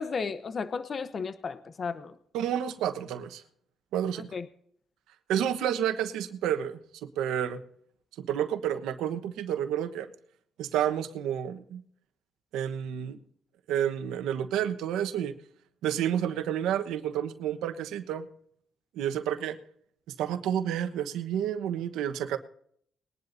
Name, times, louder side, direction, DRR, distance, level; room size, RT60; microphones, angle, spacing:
voice 1, 0.0-2.2 4.3-4.5, left 5 dB, 45° left, 12 dB, 0.9 m, -34 dB
voice 2, 2.3-3.4 3.9-4.3 5.3-7.6 8.2-10.1 10.6-11.8 12.5-13.2 13.7-15.3 15.8-18.3 19.0-19.6 20.2-22.4, right 10 dB, 90° right, 9 dB, 1.1 m, -30 dB
21.5 x 11.0 x 2.7 m, 0.63 s
cardioid pair, 90°, 0 cm